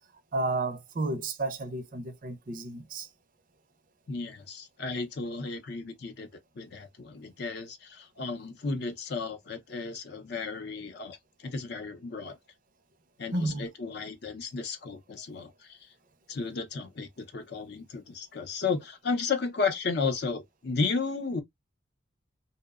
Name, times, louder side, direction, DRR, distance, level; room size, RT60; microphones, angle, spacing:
voice 1, 0.3-3.1 13.3-13.6, right 2 dB, 45° right, 0.4 m, -32 dB
voice 2, 4.1-6.3 6.6-12.4 13.2-15.8 16.3-21.4, left 4 dB, 55° left, 0.5 m, -33 dB
2.7 x 2.0 x 2.2 m
head